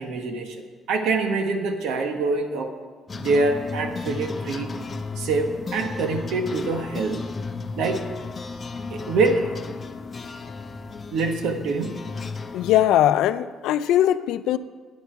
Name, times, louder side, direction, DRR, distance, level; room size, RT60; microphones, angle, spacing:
voice 1, 0.0-2.7 3.1-4.7 5.2-7.2 7.8-8.1 8.9-9.4 11.1-12.1, right 3 dB, 80° right, 5 dB, 1.4 m, -25 dB
sound 1, 3.1-12.8, left 4 dB, 25° left, 0.7 m, -34 dB
voice 2, 12.5-14.6, left 12 dB, 85° left, 13 dB, 0.5 m, -20 dB
16.0 x 9.8 x 4.7 m, 1.5 s
cardioid pair, 140°, 0 cm